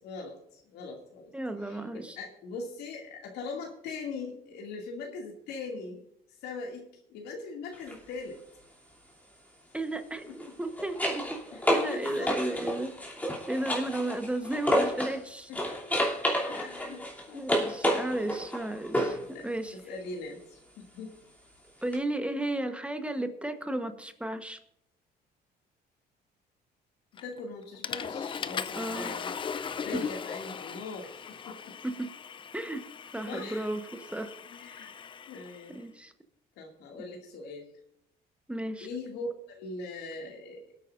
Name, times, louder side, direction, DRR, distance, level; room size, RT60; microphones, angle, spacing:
voice 1, 0.0-1.3 1.6-6.0 6.4-8.4 10.3-10.5 11.5-12.5 15.5-15.9 16.5-18.0 18.2-18.4 19.3-19.5 19.7-21.2 27.2-29.4 29.8-31.7 33.3-33.7 34.4-34.9 35.3-35.8 36.6-37.7 38.8-40.6, left 3 dB, 80° left, 0 dB, 2.4 m, -41 dB
voice 2, 1.3-2.2 9.7-11.4 11.7-12.9 13.5-15.5 16.9-17.0 17.3-19.2 19.4-19.8 21.8-24.6 28.7-29.1 31.8-32.1 32.5-32.8 33.1-34.3 35.7-36.1 38.5-38.9, right 1 dB, 5° right, 7 dB, 1.1 m, -34 dB
sound 1, 7.7-8.0 10.3-15.2 15.5-19.3 21.9-22.0, equal, 10° left, 2.9 m, -30 dB
Water / Toilet flush, 27.2-27.4 27.8-35.7, left 6 dB, 30° left, 0.5 m, -39 dB
26.5 x 9.0 x 2.6 m, 0.76 s
cardioid pair, 110°, 17 cm